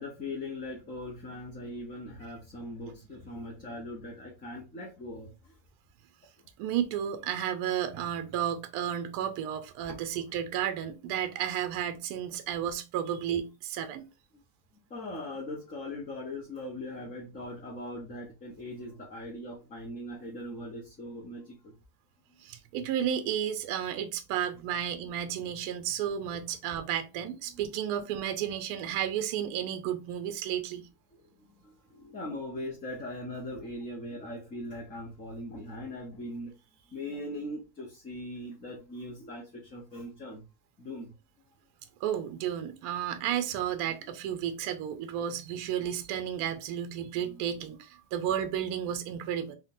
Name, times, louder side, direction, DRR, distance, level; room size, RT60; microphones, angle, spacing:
voice 1, 0.0-5.5 9.9-10.0 14.9-21.7 22.3-22.4 27.5-27.6 31.6-36.5 36.9-40.4 40.8-41.1 47.3-47.4, left 1 dB, 20° left, 0.5 m, -40 dB
voice 2, 6.6-14.1 22.4-30.9 42.0-49.6, right 9 dB, 45° right, 0.5 m, -32 dB
3.7 x 2.1 x 2.6 m
supercardioid pair, 155°, 43 cm